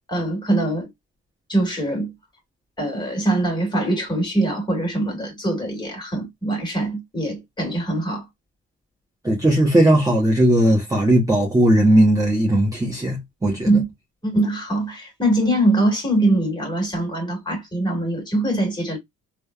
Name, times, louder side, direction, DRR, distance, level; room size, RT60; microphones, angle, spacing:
voice 1, 0.1-0.9 1.5-2.1 2.8-8.2 13.6-13.8 14.2-19.0, right 1 dB, 15° left, 1.6 m, -22 dB
voice 2, 9.2-13.7, right 1 dB, 10° right, 0.9 m, -17 dB
3.3 x 2.2 x 2.2 m
cardioid pair, 90°, 30 cm